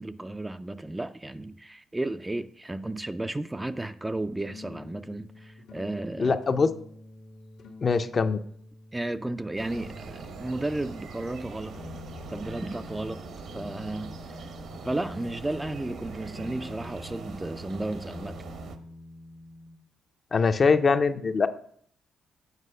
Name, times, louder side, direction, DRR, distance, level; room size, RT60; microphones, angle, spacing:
voice 1, 0.0-6.4 8.9-11.8 12.3-13.2 13.5-14.5 14.8-18.4, right 2 dB, 15° right, 0.3 m, -33 dB
sound 1, 4.2-10.9 11.7-19.8, left 3 dB, 90° left, 1.5 m, -47 dB
voice 2, 6.2-6.7 7.8-8.4 20.3-21.5, left 4 dB, 40° left, 0.5 m, -22 dB
sound 2, 9.6-18.8, right 4 dB, 65° right, 0.9 m, -42 dB
8.2 x 4.8 x 5.5 m
cardioid pair, 90°, 0 cm